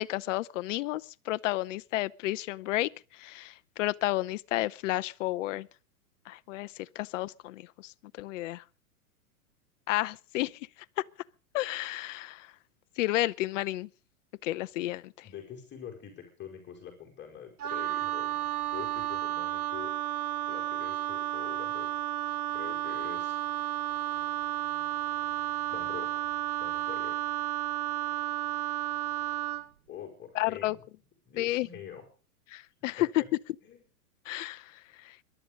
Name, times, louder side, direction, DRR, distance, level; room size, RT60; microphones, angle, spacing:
voice 1, 0.0-5.7 6.3-8.6 9.9-10.7 11.5-12.5 13.0-13.9 14.4-15.1 30.3-30.8 31.4-31.7 32.5-33.2 34.3-35.2, left 16 dB, 55° left, 0.7 m, -32 dB
voice 2, 15.2-18.5 18.7-19.9 20.5-21.9 22.5-23.4 25.7-26.3 26.6-27.2 29.9-30.8 31.3-32.0 33.0-33.3 33.6-33.8, left 9 dB, 25° left, 5.2 m, -45 dB
Wind instrument woodwind instrument, 17.6-29.7, right 13 dB, 80° right, 1.4 m, -32 dB
23.0 x 11.0 x 5.2 m
hypercardioid pair, 115°, 44 cm